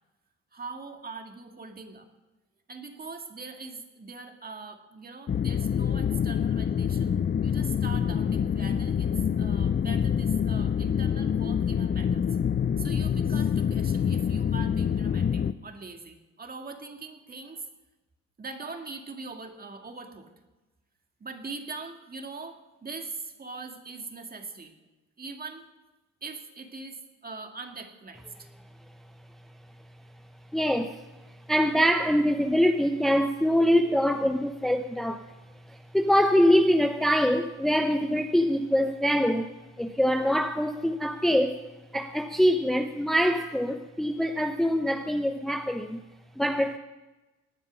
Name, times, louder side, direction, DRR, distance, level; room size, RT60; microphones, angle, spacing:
voice 1, 0.5-2.1 2.7-7.1 7.4-9.1 9.4-12.2 12.8-17.7 18.4-20.3 21.2-24.8 25.2-25.6 26.2-28.5, right 4 dB, 30° right, 5 dB, 2.0 m, -41 dB
sound 1, 5.3-15.5, left 8 dB, 35° left, 0.6 m, -26 dB
voice 2, 30.5-41.6 41.9-46.0 46.4-46.8, equal, ahead, 6 dB, 0.7 m, -24 dB
18.0 x 9.8 x 6.2 m, 1.1 s
cardioid pair, 90°, 30 cm